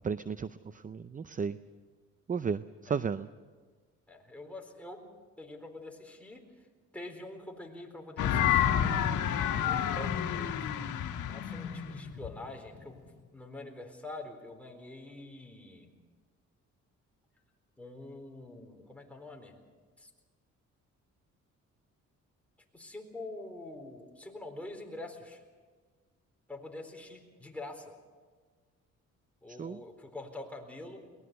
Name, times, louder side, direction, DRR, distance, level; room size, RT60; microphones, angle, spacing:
voice 1, 0.0-0.5 0.8-1.6 2.3-3.3 29.6-29.8, right 6 dB, 25° right, 13 dB, 0.6 m, -33 dB
voice 2, 4.1-5.1 5.4-6.4 6.9-8.9 9.3-10.7 11.3-13.0 13.3-15.9 17.8-19.6 20.0-20.1 22.7-25.4 26.5-27.9 29.4-31.0, left 2 dB, 5° left, 2 dB, 4.1 m, -45 dB
sound 1, 8.2-13.1, left 10 dB, 85° left, 1.7 m, -29 dB
22.5 x 19.0 x 6.8 m, 1.5 s
cardioid pair, 90°, 30 cm